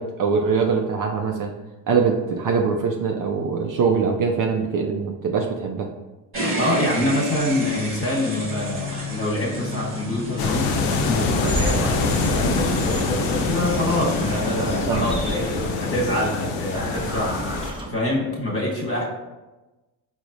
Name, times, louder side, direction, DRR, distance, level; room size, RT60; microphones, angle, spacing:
voice 1, 0.0-1.6 1.9-5.9 14.9-15.0 17.9-18.0, right 5 dB, 45° right, 2 dB, 0.4 m, -23 dB
sound 1, 6.3-14.8, left 1 dB, 25° right, 1.3 m, -31 dB
voice 2, 6.6-19.0, left 1 dB, 30° left, -3 dB, 1.4 m, -25 dB
sound 2, 10.4-17.7, left 3 dB, 70° left, 0.6 m, -25 dB
sound 3, 11.5-16.1 16.6-17.9, equal, 10° right, 0.9 m, -32 dB
4.6 x 2.1 x 2.5 m, 1.1 s
supercardioid pair, 65°, 47 cm